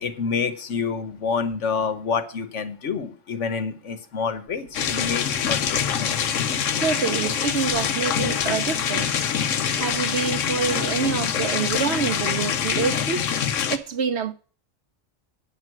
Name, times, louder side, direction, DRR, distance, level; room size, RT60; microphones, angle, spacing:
voice 1, 0.0-6.2, left 5 dB, 70° left, 1.4 m, -28 dB
sound 1, 4.7-13.8, left 8 dB, 85° left, 1.2 m, -25 dB
voice 2, 6.8-9.1 9.7-13.3 13.7-14.3, right 6 dB, 60° right, 1.0 m, -26 dB
8.9 x 6.2 x 7.4 m
omnidirectional pair, 1.3 m